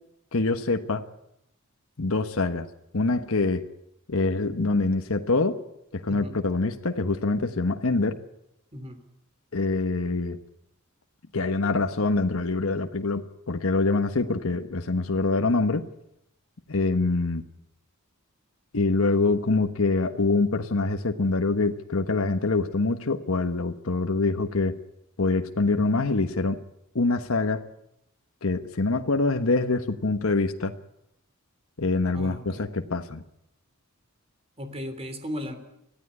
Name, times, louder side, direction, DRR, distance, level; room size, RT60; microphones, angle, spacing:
voice 1, 0.3-1.0 2.0-2.7 2.9-3.6 4.1-5.6 5.9-8.2 9.5-10.4 11.3-15.9 16.7-17.4 18.7-24.8 25.2-26.6 26.9-27.7 28.4-30.7 31.8-33.2, left 3 dB, 75° left, 6 dB, 1.2 m, -25 dB
voice 2, 6.1-6.4 8.7-9.0 32.1-32.6 34.6-35.6, equal, 30° right, 8 dB, 3.1 m, -36 dB
24.5 x 15.5 x 9.8 m, 0.82 s
head